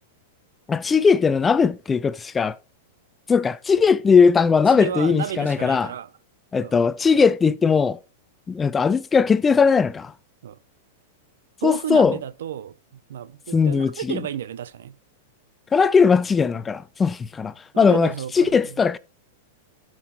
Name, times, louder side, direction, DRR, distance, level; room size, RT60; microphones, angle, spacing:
voice 1, 0.7-2.6 3.3-5.9 6.5-8.0 8.5-10.1 11.6-12.1 13.5-14.2 15.7-19.0, left 5 dB, 20° left, 0.5 m, -19 dB
voice 2, 4.7-6.1 6.6-6.7 10.4-10.6 11.6-15.0 17.7-18.8, right 10 dB, 75° right, 0.5 m, -32 dB
12.5 x 6.1 x 2.9 m
hypercardioid pair, 115°, 0 cm